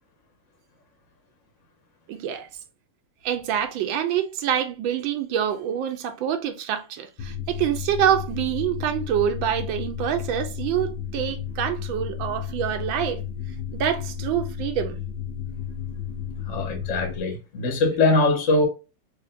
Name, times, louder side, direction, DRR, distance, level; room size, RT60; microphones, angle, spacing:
voice 1, 2.1-2.5 3.2-13.2 13.7-15.0, right 9 dB, 90° right, 1.4 m, -26 dB
sound 1, 7.2-17.2, left 8 dB, 80° left, 1.4 m, -33 dB
voice 2, 16.4-18.7, left 2 dB, 45° left, 1.2 m, -22 dB
4.7 x 2.8 x 2.4 m
omnidirectional pair, 2.1 m